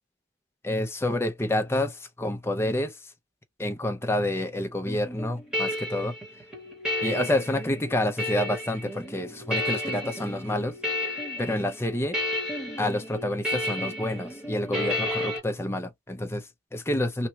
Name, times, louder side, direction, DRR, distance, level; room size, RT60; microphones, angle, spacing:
voice 1, 0.6-3.0 3.6-6.2 7.0-10.7 11.4-12.2 12.8-17.3, left 1 dB, 15° left, 0.6 m, -28 dB
sound 1, 4.9-15.4, left 1 dB, 5° right, 1.8 m, -32 dB
3.0 x 2.9 x 2.8 m
head